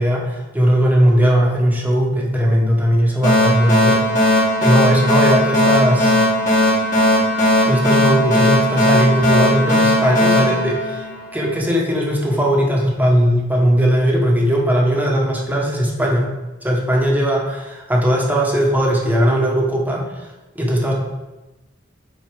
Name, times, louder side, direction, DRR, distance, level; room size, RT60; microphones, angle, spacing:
voice 1, 0.0-6.1 7.6-11.0 11.3-16.3 16.6-20.1 20.5-20.9, equal, 10° right, -2 dB, 1.4 m, -18 dB
sound 1, 3.2-11.6, left 1 dB, 45° left, 2.6 m, -17 dB
7.9 x 4.3 x 5.3 m, 1.1 s
head